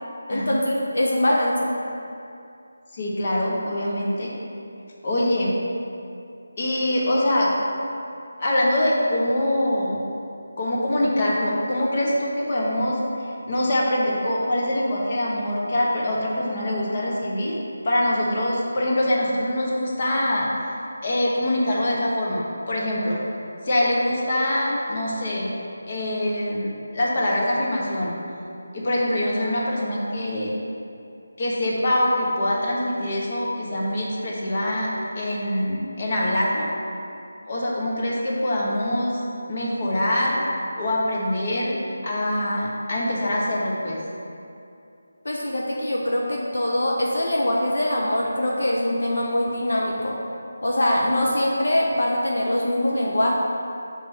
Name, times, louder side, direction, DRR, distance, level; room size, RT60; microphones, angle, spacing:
voice 1, 0.3-1.7 45.2-50.2 50.6-53.3, left 1 dB, 75° left, -2 dB, 0.7 m, -23 dB
voice 2, 2.9-4.3 5.0-5.5 6.6-7.5 8.4-10.0 10.6-17.5 17.8-20.5 21.0-23.2 23.6-25.5 25.9-28.1 28.7-30.5 31.4-34.9 35.2-36.6 37.5-39.2 39.5-40.4 40.8-41.7 42.0-44.0, left 1 dB, 40° left, -4 dB, 1.1 m, -24 dB
5.2 x 3.4 x 5.6 m, 2.6 s
figure-of-eight pair, 165°, 0 cm